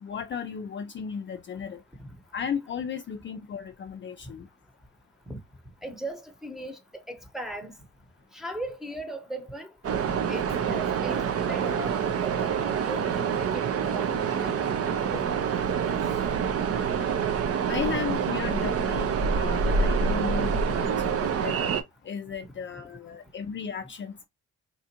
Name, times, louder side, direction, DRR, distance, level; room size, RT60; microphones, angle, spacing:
voice 1, 0.0-1.8 2.3-4.5 17.7-21.6 22.0-24.3, left 7 dB, 40° left, 0.4 m, -35 dB
voice 2, 5.8-7.7 8.3-9.7 10.3-14.6 14.9-16.0 19.4-19.5, right 1 dB, ahead, 1.0 m, -39 dB
sound 1, 9.8-21.8, right 6 dB, 50° right, 0.7 m, -26 dB
4.3 x 2.4 x 2.8 m
cardioid pair, 90°, 30 cm